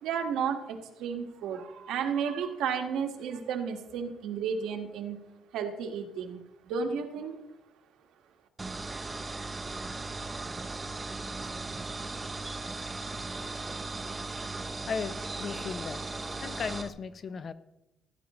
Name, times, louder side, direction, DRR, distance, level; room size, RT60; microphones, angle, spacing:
voice 1, 0.0-5.2 5.5-6.4 6.6-7.4, right 6 dB, 85° right, 4 dB, 1.6 m, -32 dB
sound 1, 8.6-16.9, right 3 dB, 15° right, 0.7 m, -37 dB
voice 2, 14.9-17.5, left 6 dB, 40° left, 12 dB, 0.6 m, -36 dB
16.0 x 10.5 x 3.1 m, 0.90 s
cardioid pair, 150°, 0 cm